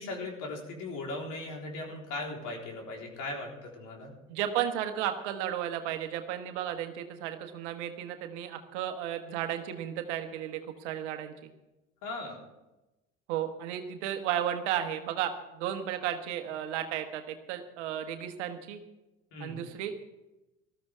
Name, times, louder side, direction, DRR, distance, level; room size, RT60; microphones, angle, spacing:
voice 1, 0.0-4.1 12.0-12.4 19.3-19.6, left 2 dB, 55° left, 0 dB, 4.1 m, -38 dB
voice 2, 4.3-11.5 13.3-18.8 19.4-20.0, right 10 dB, 70° right, 7 dB, 1.5 m, -34 dB
19.0 x 13.5 x 3.6 m, 0.99 s
figure-of-eight pair, 65°, 37 cm